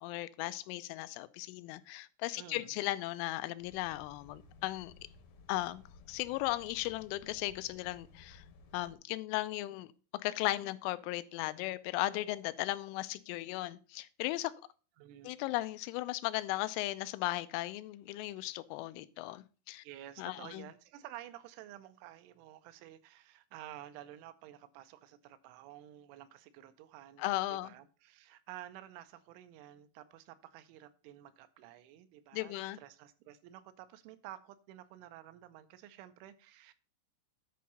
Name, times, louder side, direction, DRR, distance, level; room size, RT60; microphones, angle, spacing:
voice 1, 0.0-4.9 5.5-5.8 6.1-8.4 8.7-14.5 15.2-19.8 20.2-20.6 27.2-27.7 32.3-32.8, left 17 dB, 90° left, 3.1 m, -36 dB
voice 2, 2.4-2.7 15.0-15.3 19.8-36.7, right 13 dB, 85° right, 3.1 m, -51 dB
sound 1, 3.6-9.0, left 4 dB, 70° left, 1.8 m, -58 dB
10.5 x 4.7 x 5.4 m
omnidirectional pair, 5.5 m